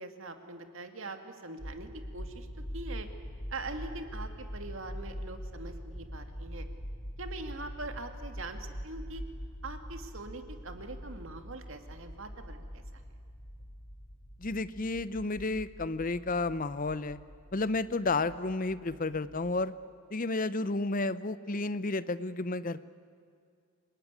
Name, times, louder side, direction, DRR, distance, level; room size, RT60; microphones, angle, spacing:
voice 1, 0.0-2.5 2.7-3.1 3.5-6.7 7.2-9.2 9.6-13.0, right 3 dB, 60° right, 7 dB, 2.0 m, -43 dB
sound 1, 1.6-19.6, equal, 55° left, 3.9 m, -44 dB
voice 2, 14.4-17.2 17.5-19.7 20.1-22.8, left 3 dB, 40° left, 15 dB, 0.7 m, -31 dB
27.5 x 19.5 x 9.6 m, 2.3 s
head